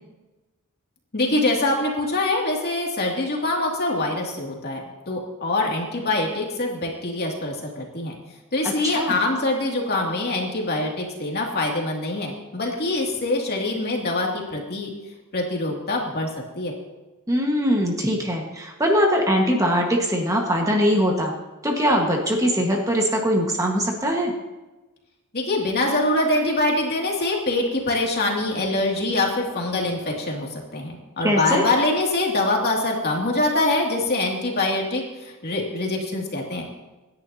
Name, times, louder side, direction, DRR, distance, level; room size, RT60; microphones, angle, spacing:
voice 1, 1.1-8.2 8.5-14.9 15.3-16.3 16.6-16.7 25.3-36.7, left 2 dB, 45° left, -1 dB, 2.6 m, -24 dB
voice 2, 8.6-9.2 17.3-21.3 21.6-24.3 31.2-31.6, equal, 15° right, 0 dB, 1.6 m, -21 dB
26.0 x 10.5 x 2.9 m, 1.1 s
head